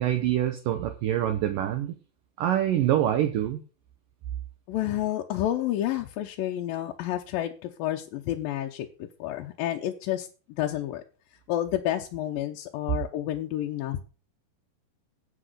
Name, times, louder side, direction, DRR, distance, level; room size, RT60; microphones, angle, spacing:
voice 1, 0.0-1.9 2.4-3.6, right 12 dB, 70° right, 6 dB, 2.2 m, -25 dB
voice 2, 4.7-10.3 10.6-11.0 11.5-14.0, left 12 dB, 75° left, 2 dB, 2.3 m, -30 dB
10.0 x 8.3 x 6.6 m, 0.36 s
omnidirectional pair, 4.7 m